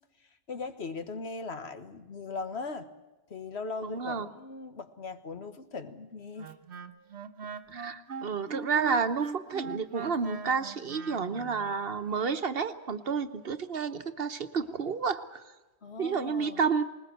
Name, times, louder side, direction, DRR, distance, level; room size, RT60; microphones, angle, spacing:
voice 1, 0.2-2.9 3.3-6.5 15.8-16.6, left 4 dB, 75° left, 9 dB, 1.7 m, -39 dB
voice 2, 3.8-4.3 7.7-15.4 16.0-16.8, right 5 dB, 65° right, 10 dB, 1.3 m, -30 dB
Wind instrument woodwind instrument, 6.4-11.7, right 4 dB, 90° right, 1.4 m, -40 dB
20.5 x 20.0 x 7.9 m, 1.1 s
omnidirectional pair, 1.1 m